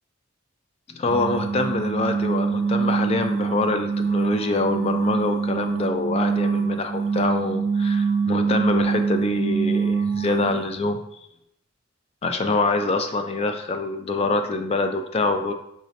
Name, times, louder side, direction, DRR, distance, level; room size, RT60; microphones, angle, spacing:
voice 1, 0.9-11.0 12.2-15.5, left 3 dB, 30° left, 7 dB, 0.3 m, -25 dB
sound 1, 1.1-10.8, right 5 dB, 55° right, 0.4 m, -24 dB
4.7 x 2.7 x 3.1 m, 0.79 s
head